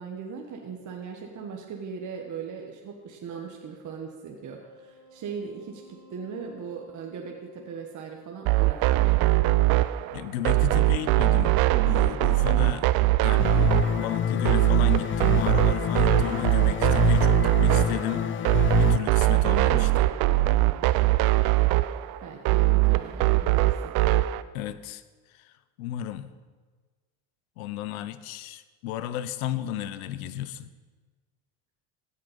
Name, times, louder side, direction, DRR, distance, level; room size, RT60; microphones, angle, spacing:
voice 1, 0.0-9.1 22.2-23.8, right 6 dB, 45° right, 1 dB, 1.3 m, -39 dB
sound 1, 3.3-13.5, left 1 dB, 65° left, 3.1 m, -56 dB
sound 2, 8.4-24.4, right 18 dB, 60° right, 0.5 m, -22 dB
voice 2, 10.1-11.6 11.9-12.9 13.2-18.3 18.7-20.1 24.5-25.0 25.3-25.5 25.8-26.3 27.6-30.7, left 12 dB, 90° left, 14 dB, 0.7 m, -33 dB
sound 3, 13.4-19.0, left 9 dB, 30° left, 0.5 m, -27 dB
16.0 x 5.6 x 5.1 m, 1.4 s
supercardioid pair, 85°, 41 cm